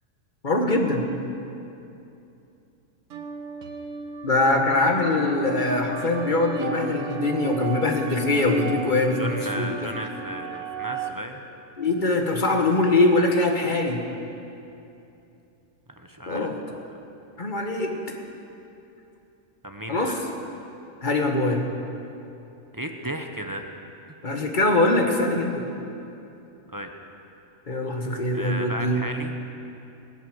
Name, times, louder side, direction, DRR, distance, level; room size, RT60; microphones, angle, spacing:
voice 1, 0.4-1.1 4.2-9.7 11.8-14.0 16.3-16.5 17.4-18.0 19.9-20.2 21.0-21.6 24.2-25.7 27.7-29.0, left 2 dB, 35° left, 3 dB, 1.5 m, -22 dB
sound 1, 3.1-11.1, right 5 dB, 60° right, 1.3 m, -36 dB
voice 2, 9.2-11.4 16.0-16.5 19.6-20.1 22.7-23.6 26.7-26.9 28.3-29.4, equal, 20° right, 4 dB, 0.7 m, -34 dB
20.5 x 8.3 x 7.9 m, 2.8 s
omnidirectional pair, 1.5 m